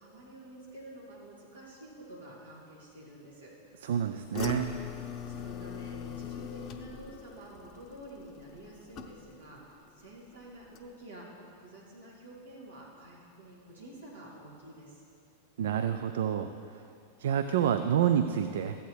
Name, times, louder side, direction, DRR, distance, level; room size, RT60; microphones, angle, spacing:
voice 1, 0.0-3.9 5.1-11.3 11.6-15.0, right 1 dB, 75° right, -6 dB, 2.6 m, -49 dB
voice 2, 3.8-4.7 15.6-16.5 17.2-18.8, right 9 dB, 60° right, 9 dB, 0.3 m, -28 dB
sound 1, 4.3-9.6 9.9-10.3 10.7-10.8, left 8 dB, 35° left, 0.6 m, -41 dB
14.0 x 8.4 x 3.3 m, 2.5 s
figure-of-eight pair, 90°, 0 cm